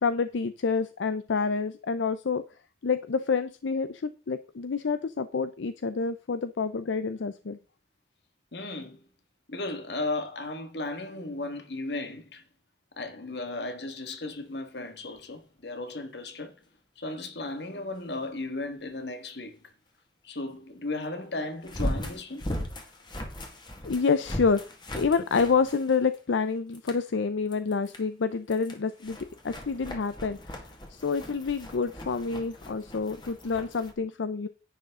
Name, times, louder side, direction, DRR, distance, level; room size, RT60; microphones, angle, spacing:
voice 1, 0.0-2.4 2.8-7.6 23.8-24.6 25.0-29.2 29.4-30.4 31.0-34.5, left 5 dB, 85° left, 0.5 m, -28 dB
voice 2, 8.5-9.0 9.5-12.4 13.0-16.6 17.0-19.6 20.2-22.5, left 2 dB, 70° left, 1.8 m, -35 dB
sound 1, 15.2-15.3 21.6-26.4 26.7-27.1 27.5-28.0 28.5-33.9, equal, 25° left, 1.8 m, -38 dB
10.5 x 9.2 x 3.7 m
head